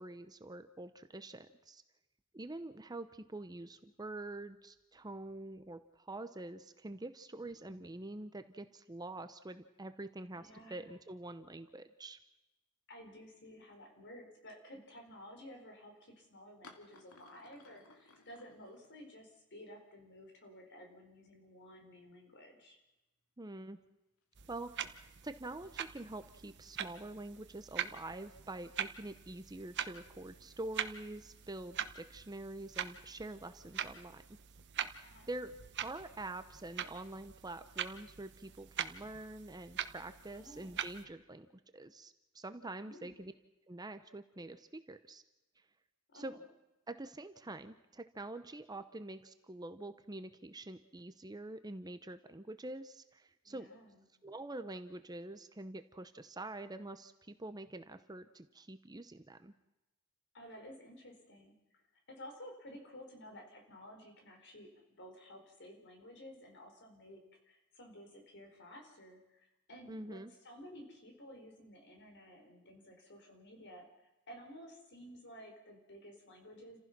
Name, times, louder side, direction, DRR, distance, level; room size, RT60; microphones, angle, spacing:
voice 1, 0.0-1.8 2.3-12.2 23.4-23.8 24.5-34.2 35.3-35.5 35.8-41.5 41.7-43.3 43.7-45.2 46.1-46.4 46.9-53.7 54.2-59.5 69.9-70.3, right 2 dB, 20° right, 10 dB, 0.8 m, -46 dB
voice 2, 7.4-7.8 10.3-10.9 12.9-22.8 35.0-35.3 40.3-40.9 42.8-43.1 46.1-46.4 53.4-54.0 60.3-61.5 62.1-64.7 65.0-73.9 74.3-76.8, equal, 55° left, 3 dB, 4.5 m, -53 dB
sound 1, 16.6-19.5 19.8-19.9 20.9-21.0 21.2-22.1 22.6-22.7 24.2-25.5 26.1-26.4 27.4-28.1, left 3 dB, 80° left, 2.4 m, -62 dB
sound 2, 24.3-41.1, right 9 dB, 55° right, 1.0 m, -44 dB
29.0 x 15.5 x 6.0 m, 1.0 s
head